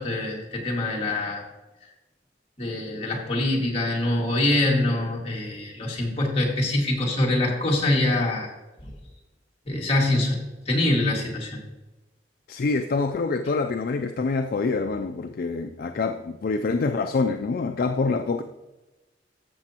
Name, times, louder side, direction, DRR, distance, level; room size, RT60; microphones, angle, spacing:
voice 1, 0.0-1.5 1.8-1.9 2.6-8.5 8.8-8.9 9.7-10.4 10.7-11.6, left 1 dB, 35° left, -3 dB, 2.0 m, -24 dB
voice 2, 12.5-18.4, left 4 dB, 55° left, 6 dB, 0.4 m, -26 dB
13.5 x 6.8 x 2.9 m, 1.1 s
head